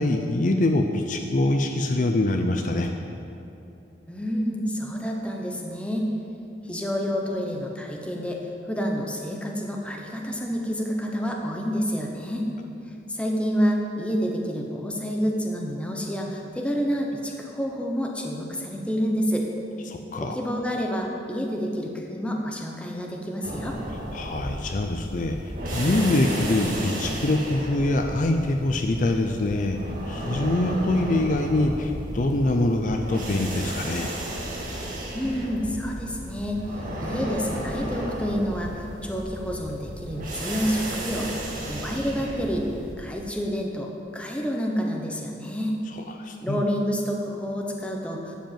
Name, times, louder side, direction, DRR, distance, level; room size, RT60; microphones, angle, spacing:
voice 1, 0.0-2.9 19.9-20.4 24.1-29.8 30.1-34.1 45.9-46.6, left 2 dB, 45° left, 4 dB, 0.5 m, -24 dB
voice 2, 4.1-6.1 6.6-8.4 8.7-12.5 13.1-19.5 20.2-23.8 35.1-36.6 37.0-42.7 43.0-45.7 46.4-48.3, equal, 5° left, 0 dB, 1.0 m, -28 dB
sound 1, 23.4-42.9, right 1 dB, 50° right, 1.9 m, -33 dB
11.5 x 5.2 x 7.6 m, 2.7 s
head